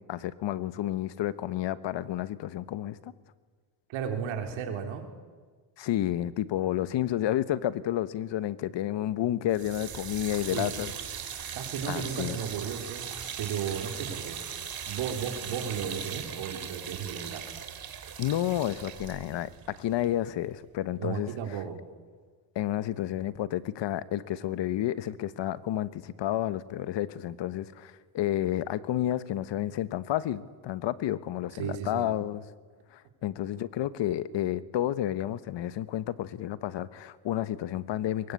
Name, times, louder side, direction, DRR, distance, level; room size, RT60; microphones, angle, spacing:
voice 1, 0.0-3.1 5.8-10.9 11.9-12.4 18.2-21.6 22.5-32.5 32.9-38.3, left 12 dB, 65° left, 15 dB, 1.2 m, -31 dB
voice 2, 3.9-5.0 10.5-10.7 11.5-13.1 13.4-14.4 14.9-17.4 21.0-21.8 31.5-32.1, right 7 dB, 90° right, 4 dB, 3.9 m, -34 dB
sound 1, 9.5-20.6, right 8 dB, 50° right, 3.0 m, -39 dB
23.0 x 22.5 x 8.4 m, 1.5 s
cardioid pair, 110°, 46 cm